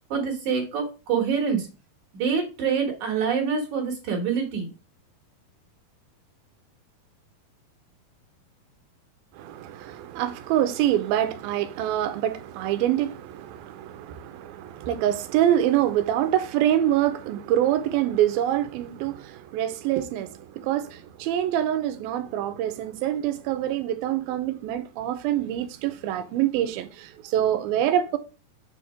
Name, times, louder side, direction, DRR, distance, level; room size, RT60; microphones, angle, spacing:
voice 1, 0.1-1.7 2.1-4.7, right 6 dB, 60° right, 2.4 m, -26 dB
voice 2, 9.3-28.2, right 11 dB, 85° right, 2.4 m, -25 dB
7.1 x 4.2 x 4.8 m
omnidirectional pair, 4.3 m